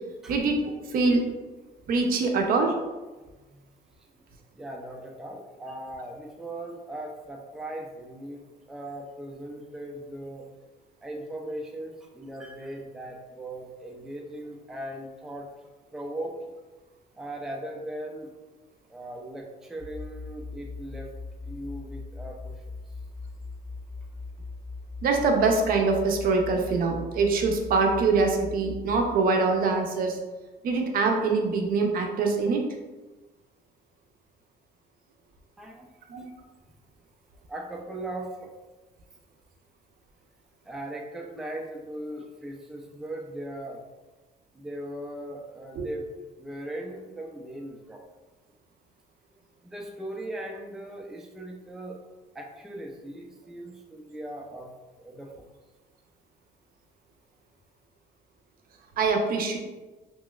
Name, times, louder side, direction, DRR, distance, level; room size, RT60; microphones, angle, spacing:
voice 1, 0.3-1.2 1.9-2.7 25.0-30.2 30.6-32.7 36.1-36.3 45.7-45.9 59.0-59.6, right 4 dB, 60° right, 3 dB, 0.5 m, -24 dB
voice 2, 3.4-3.7 4.5-10.5 11.0-15.5 15.9-16.3 17.1-18.3 18.9-21.1 21.4-22.5 35.6-35.9 37.5-38.5 40.6-43.8 44.5-46.1 46.4-48.0 49.6-52.0 52.3-54.7 55.0-55.3, right 1 dB, 5° right, 0 dB, 0.3 m, -38 dB
sound 1, 19.8-29.0, left 3 dB, 20° right, 0.8 m, -40 dB
3.0 x 3.0 x 2.2 m, 1.2 s
cardioid pair, 110°, 17 cm